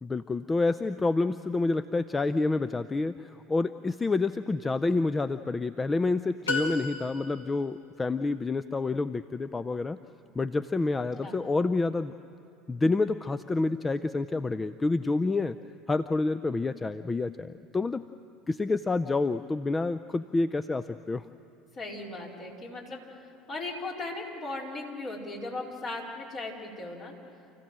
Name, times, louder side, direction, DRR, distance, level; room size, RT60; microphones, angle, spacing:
voice 1, 0.0-10.0 10.4-12.1 12.7-15.6 15.9-18.0 18.5-21.3, left 3 dB, 20° left, 12 dB, 0.5 m, -28 dB
sound 1, 6.5-7.6, left 2 dB, 85° left, 1.9 m, -32 dB
voice 2, 21.7-23.0 23.5-27.1, left 2 dB, 45° left, -2 dB, 4.6 m, -37 dB
28.5 x 15.5 x 7.6 m, 2.7 s
hypercardioid pair, 70°, 0 cm